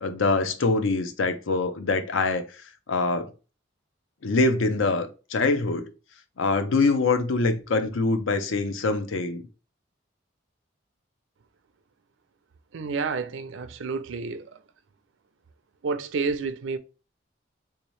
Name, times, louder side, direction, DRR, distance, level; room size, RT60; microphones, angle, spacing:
voice 1, 0.0-2.4 2.9-3.3 4.2-5.9 6.4-9.4, left 3 dB, 85° left, 0.6 m, -24 dB
voice 2, 12.7-14.6 15.8-16.8, right 4 dB, 80° right, 0.4 m, -30 dB
3.5 x 2.8 x 3.1 m
head